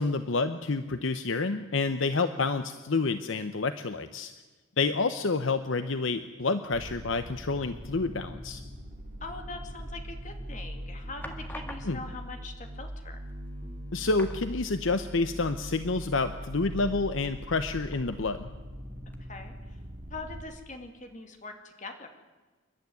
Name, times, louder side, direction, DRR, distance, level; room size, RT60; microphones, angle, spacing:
voice 1, 0.0-4.3 4.8-8.6 11.8-12.0 13.9-18.5, left 3 dB, 65° left, 10 dB, 0.8 m, -29 dB
sound 1, 6.7-20.4, equal, 45° right, 3.0 m, -41 dB
voice 2, 9.2-13.2 19.3-19.8 20.1-22.1, left 3 dB, 35° left, 5 dB, 2.6 m, -42 dB
sound 2, 10.0-10.4 11.2-12.3 13.2-13.3 13.6-13.8 14.1-15.1 15.5-15.6 17.9-18.6 19.1-19.2, left 1 dB, 10° left, 1.8 m, -46 dB
28.5 x 12.0 x 9.5 m, 1.3 s
head